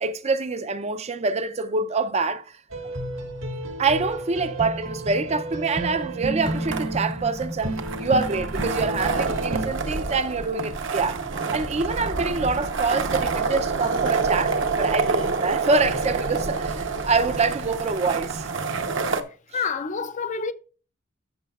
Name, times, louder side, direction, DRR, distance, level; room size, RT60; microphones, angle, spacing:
voice 1, 0.0-2.6 3.8-18.5, right 3 dB, 30° right, 0.5 m, -25 dB
Miss.Lady Bird, 2.7-9.7, right 1 dB, 80° right, 1.7 m, -31 dB
sound 1, 6.4-19.2, right 4 dB, 65° right, 0.8 m, -27 dB
voice 2, 19.5-20.5, left 5 dB, 35° left, 0.4 m, -27 dB
14.0 x 6.0 x 2.3 m
head